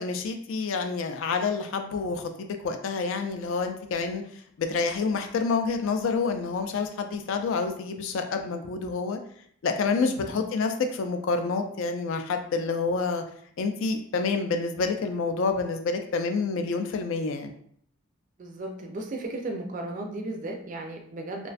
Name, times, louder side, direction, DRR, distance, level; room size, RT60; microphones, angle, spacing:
voice 1, 0.0-4.2 4.6-9.2 9.6-13.2 13.6-17.5, left 4 dB, 65° left, 6 dB, 0.3 m, -28 dB
voice 2, 18.4-21.5, right 2 dB, 35° right, 2 dB, 0.3 m, -35 dB
2.4 x 2.2 x 2.4 m, 0.64 s
head